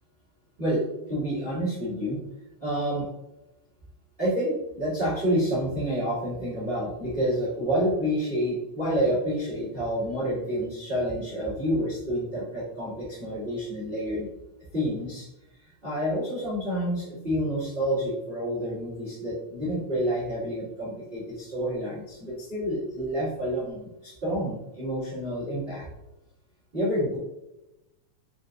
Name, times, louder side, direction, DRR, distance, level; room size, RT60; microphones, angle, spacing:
voice 1, 1.1-2.2 2.6-3.1 4.2-14.3 14.7-15.3 15.8-25.9 26.7-27.2, equal, 70° right, -10 dB, 0.5 m, -28 dB
6.0 x 2.4 x 2.6 m, 0.94 s
omnidirectional pair, 3.8 m